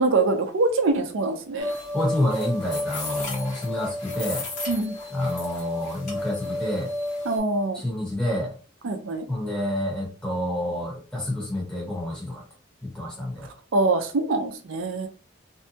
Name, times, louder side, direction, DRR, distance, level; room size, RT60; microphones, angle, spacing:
voice 1, 0.0-1.7 4.7-4.9 7.2-7.8 8.8-9.3 13.7-15.1, right 3 dB, 80° right, 6 dB, 0.5 m, -24 dB
sound 1, 1.6-7.4, left 1 dB, 40° left, 1.2 m, -31 dB
voice 2, 1.9-4.4 5.1-6.9 7.7-8.5 9.3-12.4 12.9-13.5, left 1 dB, 5° left, -4 dB, 1.0 m, -28 dB
2.6 x 2.2 x 2.6 m, 0.36 s
head